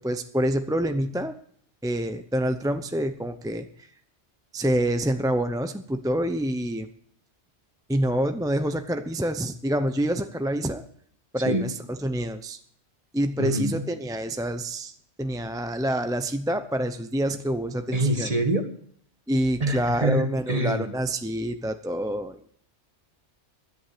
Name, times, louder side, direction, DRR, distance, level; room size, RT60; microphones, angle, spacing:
voice 1, 0.0-1.3 1.8-3.9 4.5-6.9 7.9-10.8 11.3-11.7 12.0-12.6 13.1-14.9 15.2-18.3 19.3-22.5, right 1 dB, 5° right, 8 dB, 0.5 m, -27 dB
voice 2, 11.4-11.7 13.4-13.8 17.9-18.7 19.6-20.9, right 1 dB, 35° right, 6 dB, 1.7 m, -25 dB
16.0 x 11.0 x 5.1 m, 0.63 s
omnidirectional pair, 1.2 m